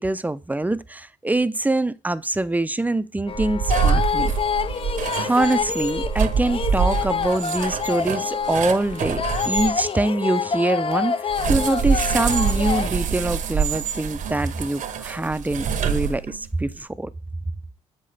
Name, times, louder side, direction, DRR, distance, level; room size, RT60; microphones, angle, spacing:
voice 1, 0.0-4.3 5.1-17.1, right 2 dB, 10° right, 0.5 m, -24 dB
sound 1, 3.3-12.9, left 6 dB, 40° left, 0.5 m, -27 dB
sound 2, 3.3-9.7 11.3-16.5, right 6 dB, 65° right, 0.9 m, -25 dB
7.4 x 5.5 x 3.4 m
supercardioid pair, 70°, 14 cm